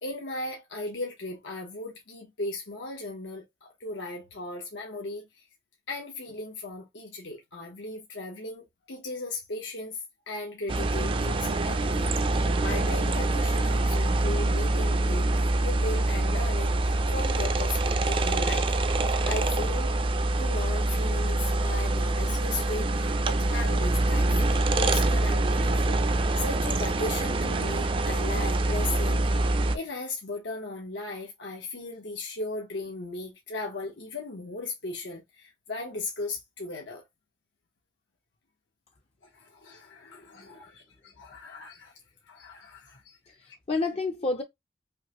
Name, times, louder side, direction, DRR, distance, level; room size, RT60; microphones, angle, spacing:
voice 1, 0.0-5.3 5.9-10.0 10.3-15.3 15.6-18.7 19.2-19.9 20.4-29.2 29.7-37.0 39.3-41.9 42.3-43.2 43.5-43.6, left 2 dB, 90° left, 1.0 m, -37 dB
sound 1, 10.7-29.8, right 2 dB, 30° right, 0.4 m, -25 dB
voice 2, 43.3-44.4, left 3 dB, 35° left, 0.4 m, -30 dB
5.6 x 2.1 x 2.9 m
head